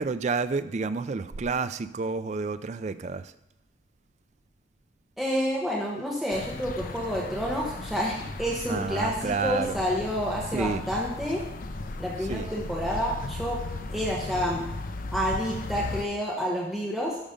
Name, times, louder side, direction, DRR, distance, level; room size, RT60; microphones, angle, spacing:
voice 1, 0.0-3.2 8.7-9.8 10.5-10.8 12.3-12.5, right 4 dB, 35° right, 13 dB, 0.4 m, -29 dB
voice 2, 5.2-11.4 12.0-13.6 13.9-14.7 15.1-17.2, equal, ahead, -4 dB, 1.1 m, -29 dB
sound 1, 6.3-16.0, left 2 dB, 45° left, 0.5 m, -36 dB
12.5 x 5.2 x 5.1 m, 0.89 s
head